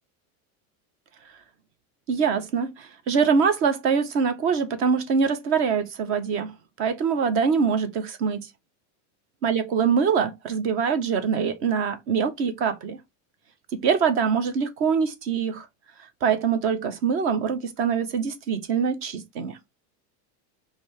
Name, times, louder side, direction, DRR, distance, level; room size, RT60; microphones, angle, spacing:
voice 1, 2.1-6.5 6.8-8.5 9.4-13.0 13.7-15.7 16.2-19.6, right 6 dB, 30° right, 0.6 m, -24 dB
5.0 x 2.7 x 3.1 m
cardioid pair, 170°, 43 cm